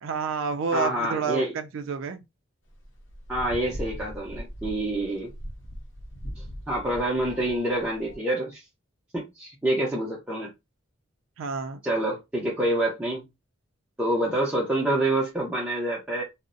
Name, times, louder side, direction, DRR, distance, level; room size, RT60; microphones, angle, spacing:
voice 1, 0.0-2.2 11.4-11.8, right 5 dB, 70° right, 0.3 m, -29 dB
voice 2, 0.7-1.5 3.3-5.3 6.4-8.6 9.1-10.5 11.8-13.2 14.0-16.2, right 1 dB, 5° right, 0.5 m, -27 dB
sound 1, 2.7-8.2, equal, 65° left, 0.6 m, -40 dB
2.5 x 2.0 x 2.5 m
head